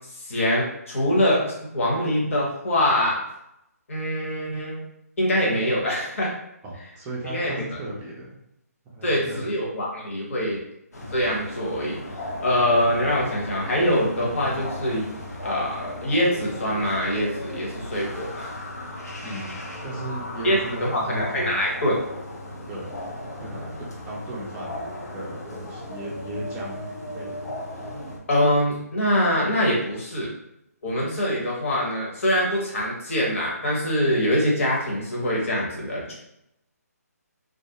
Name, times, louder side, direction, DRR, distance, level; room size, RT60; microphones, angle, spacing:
voice 1, 0.1-3.2 3.9-4.8 5.2-6.3 7.2-7.8 9.0-10.6 11.1-12.0 12.4-15.0 15.4-18.5 20.4-22.0 28.3-30.3 30.8-36.1, equal, 55° left, -3 dB, 1.0 m, -24 dB
voice 2, 6.6-8.4 8.8-9.4 19.2-21.7 22.7-23.1 23.4-27.6, right 1 dB, 15° right, -5 dB, 0.5 m, -36 dB
sound 1, 10.9-28.2, left 1 dB, 75° left, 0.7 m, -36 dB
2.3 x 2.1 x 2.9 m, 0.82 s
figure-of-eight pair, 150°, 9 cm